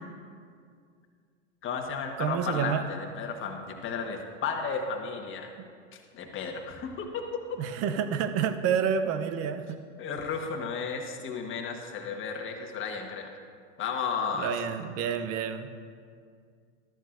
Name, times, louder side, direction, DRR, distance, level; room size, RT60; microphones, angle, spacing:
voice 1, 1.6-5.5 5.9-7.2 10.0-13.3 13.8-14.5, left 5 dB, 30° left, 3 dB, 1.4 m, -33 dB
voice 2, 2.2-2.8 7.6-9.8 14.4-15.7, right 7 dB, 40° right, 10 dB, 0.7 m, -29 dB
13.5 x 11.5 x 2.6 m, 2.2 s
hypercardioid pair, 105°, 38 cm